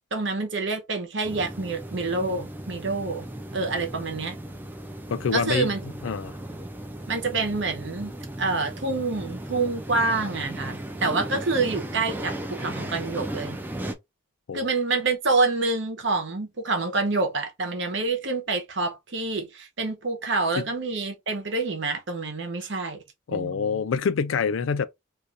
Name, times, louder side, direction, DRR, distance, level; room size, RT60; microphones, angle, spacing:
voice 1, 0.1-3.3 3.5-4.4 5.3-5.8 7.1-8.1 8.4-13.6 14.5-23.0 23.3-23.8, right 3 dB, 65° right, 0.9 m, -27 dB
sound 1, 1.2-13.9, right 1 dB, 10° right, 0.4 m, -36 dB
voice 2, 5.1-6.3 14.5-14.6 20.6-20.7 23.3-24.9, left 6 dB, 75° left, 0.4 m, -26 dB
2.6 x 2.4 x 4.0 m
head